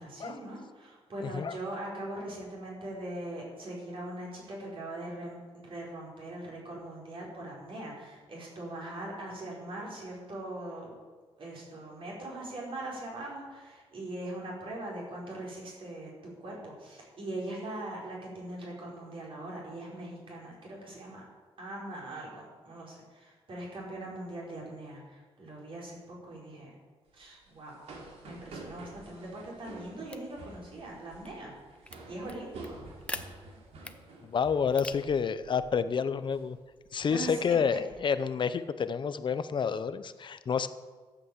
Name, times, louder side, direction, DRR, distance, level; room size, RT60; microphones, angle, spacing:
voice 1, 0.0-10.9 11.4-16.1 16.4-21.2 21.6-26.7 27.1-27.8 28.2-31.6 32.1-32.8 37.1-37.4, right 1 dB, 55° right, -4 dB, 5.4 m, -41 dB
voice 2, 1.2-1.6 34.2-36.6 36.9-40.7, left 6 dB, 45° left, 12 dB, 0.7 m, -29 dB
sound 1, 27.1-35.2 35.4-35.7 36.1-36.4 36.9-38.0, right 3 dB, 75° right, 3.0 m, -49 dB
sound 2, 30.0-38.0, left 2 dB, 10° left, 0.7 m, -48 dB
13.0 x 8.4 x 7.3 m, 1.4 s
cardioid pair, 120°, 11 cm